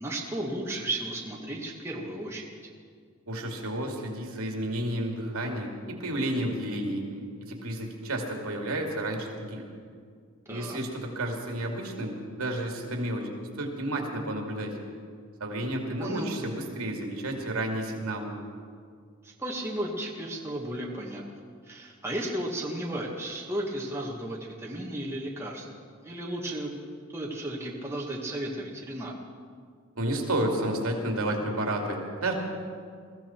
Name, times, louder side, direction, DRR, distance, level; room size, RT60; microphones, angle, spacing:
voice 1, 0.0-2.4 10.5-10.8 16.0-16.3 19.2-21.2 21.6-25.7 26.0-26.7 27.1-29.1, right 1 dB, 10° right, -2 dB, 1.6 m, -34 dB
voice 2, 3.3-7.1 7.4-9.7 10.5-13.3 13.6-14.8 15.4-18.4 30.0-32.3, right 1 dB, 80° right, 2 dB, 2.5 m, -31 dB
21.5 x 14.5 x 4.5 m, 2.1 s
head